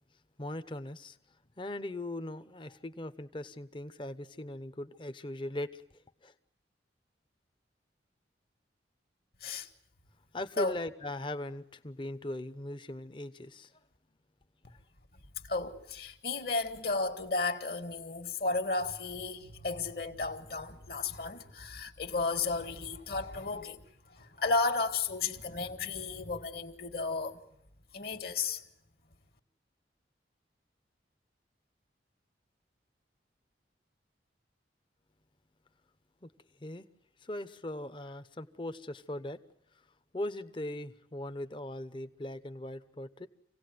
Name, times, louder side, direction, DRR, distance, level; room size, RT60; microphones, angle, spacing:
voice 1, 0.4-1.2 1.6-6.3 10.3-13.7 14.7-14.8 36.2-36.3 36.6-36.9 37.2-39.4 40.1-43.3, left 1 dB, 25° left, 0.9 m, -39 dB
voice 2, 15.5-23.8 24.1-27.4 27.9-28.6, left 3 dB, 55° left, 1.8 m, -33 dB
26.5 x 17.5 x 9.4 m
head